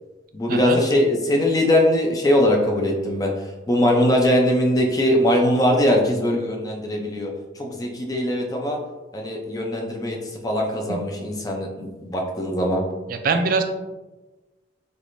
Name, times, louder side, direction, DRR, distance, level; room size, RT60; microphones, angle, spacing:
voice 1, 0.3-3.3 3.7-7.3 7.6-8.8 9.1-10.2 10.4-12.8, left 1 dB, 20° left, 1 dB, 0.4 m, -21 dB
voice 2, 13.1-13.6, right 4 dB, 50° right, 7 dB, 0.3 m, -23 dB
3.3 x 3.2 x 2.5 m, 1.1 s
head